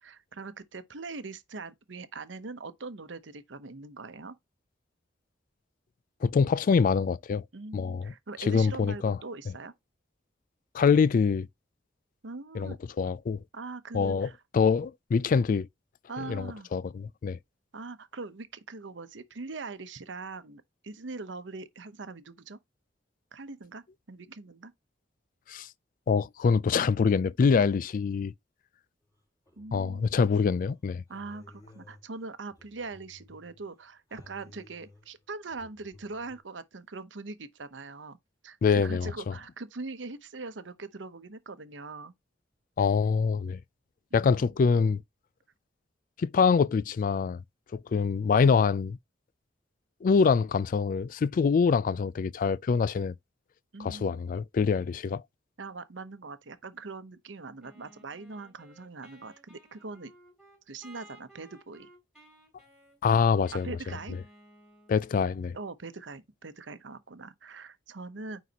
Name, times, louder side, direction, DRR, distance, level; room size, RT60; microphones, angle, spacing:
voice 1, 0.0-4.4 7.5-9.7 12.2-12.8 13.5-14.4 16.1-16.7 17.7-22.6 23.3-24.7 29.6-30.1 31.1-38.2 38.4-42.1 44.1-44.5 53.7-54.2 55.6-60.1 60.7-61.9 63.6-64.2 65.5-68.5, right 3 dB, 85° right, 0.9 m, -42 dB
voice 2, 6.2-7.4 7.7-8.1 8.4-9.2 10.7-11.5 12.5-13.4 13.9-14.3 14.5-15.7 16.3-17.4 25.5-25.7 26.1-28.3 29.7-31.0 38.6-39.1 42.8-43.6 44.1-45.0 46.2-47.4 47.7-49.0 50.0-53.1 53.8-55.2 63.0-63.7 64.9-65.6, left 5 dB, 45° left, 0.3 m, -25 dB
sound 1, 29.1-30.6 31.1-33.7 34.1-36.4, left 2 dB, 20° left, 4.5 m, -56 dB
Wind instrument woodwind instrument, 57.6-65.3, right 1 dB, ahead, 3.5 m, -57 dB
9.3 x 4.1 x 2.9 m
head